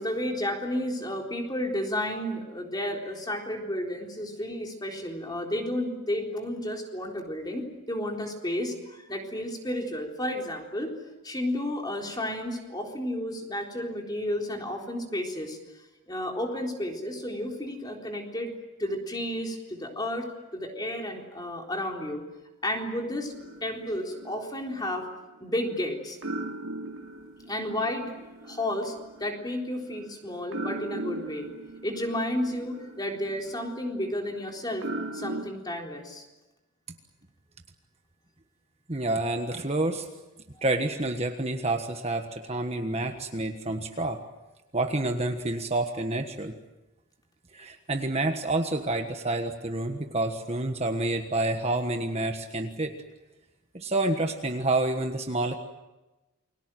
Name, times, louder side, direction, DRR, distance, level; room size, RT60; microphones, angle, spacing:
voice 1, 0.0-10.9 11.2-15.6 16.1-18.5 18.8-22.2 22.6-23.3 23.6-25.1 25.4-26.2 27.5-28.1 28.4-28.9 29.2-31.5 31.8-36.2, left 1 dB, 20° left, 1 dB, 3.9 m, -32 dB
sound 1, 23.3-25.8 26.2-35.4, right 2 dB, 65° right, 2.3 m, -40 dB
voice 2, 38.9-40.1 40.6-44.2 44.7-46.5 47.5-52.9 53.7-55.5, right 2 dB, 30° right, 5 dB, 1.4 m, -28 dB
29.5 x 22.5 x 7.7 m, 1.1 s
head